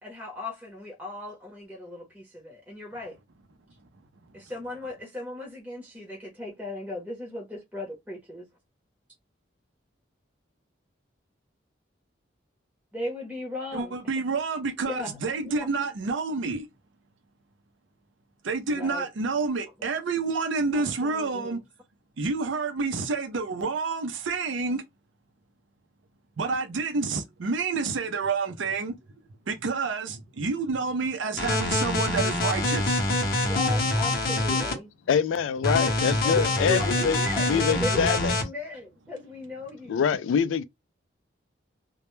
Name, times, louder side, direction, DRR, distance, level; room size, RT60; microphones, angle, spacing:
voice 1, 0.0-3.2 4.3-8.5 12.9-14.1 14.8-15.7 18.7-19.1 20.7-21.6 33.4-34.9 36.2-40.0, left 2 dB, 10° right, 0.7 m, -37 dB
voice 2, 13.7-16.7 18.4-21.6 22.2-24.8 26.4-28.9 29.5-33.0, right 4 dB, 75° right, 0.5 m, -29 dB
sound 1, 31.4-34.7 35.6-38.4, left 2 dB, 50° left, 0.6 m, -25 dB
voice 3, 35.1-37.2 37.5-38.3 39.9-40.6, left 7 dB, 80° left, 0.3 m, -24 dB
2.1 x 2.1 x 3.0 m
head